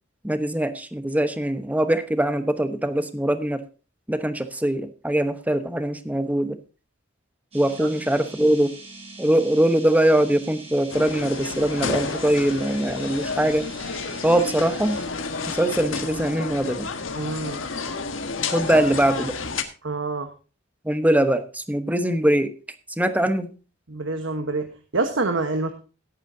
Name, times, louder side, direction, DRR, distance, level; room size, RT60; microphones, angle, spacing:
voice 1, 0.2-3.6 4.1-6.6 7.5-8.8 9.2-13.7 14.2-15.0 15.5-16.9 18.5-19.3 20.8-22.5 23.0-23.5, right 1 dB, 10° right, 9 dB, 1.0 m, -22 dB
sound 1, 7.5-15.1, right 3 dB, 35° right, 6.4 m, -43 dB
sound 2, 10.9-19.6, left 4 dB, 75° left, 1.5 m, -31 dB
voice 2, 17.1-17.6 18.7-18.8 19.8-20.3 23.9-25.7, right 3 dB, 70° right, 7 dB, 1.2 m, -27 dB
17.0 x 9.2 x 2.7 m, 0.34 s
head